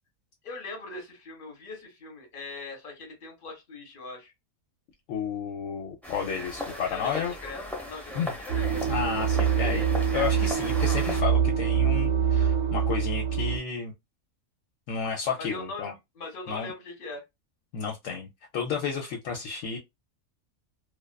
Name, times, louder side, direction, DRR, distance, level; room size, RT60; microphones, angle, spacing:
voice 1, 0.4-4.3 6.7-7.6 7.9-8.7 15.4-15.9 16.1-17.2, left 3 dB, 45° left, 1.0 m, -41 dB
voice 2, 5.1-7.3 8.1-8.3 8.9-13.9 14.9-15.9 16.5-16.7 17.7-19.8, left 6 dB, 75° left, 0.9 m, -32 dB
sound 1, 6.0-11.2, left 1 dB, ahead, 0.4 m, -37 dB
sound 2, 8.5-13.6, right 7 dB, 65° right, 0.9 m, -25 dB
2.4 x 2.3 x 2.2 m
omnidirectional pair, 1.4 m